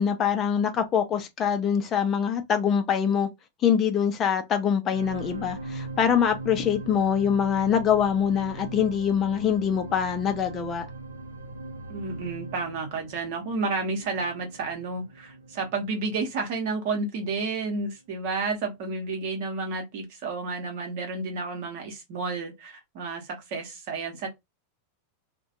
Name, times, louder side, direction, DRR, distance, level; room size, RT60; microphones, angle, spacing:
voice 1, 0.0-3.3 3.6-10.9, left 8 dB, 30° left, 0.5 m, -24 dB
sound 1, 4.9-17.3 17.9-18.0, right 2 dB, 80° right, 0.5 m, -40 dB
voice 2, 11.9-24.3, right 3 dB, 50° right, 0.9 m, -31 dB
2.5 x 2.2 x 2.5 m
figure-of-eight pair, 90°, 0 cm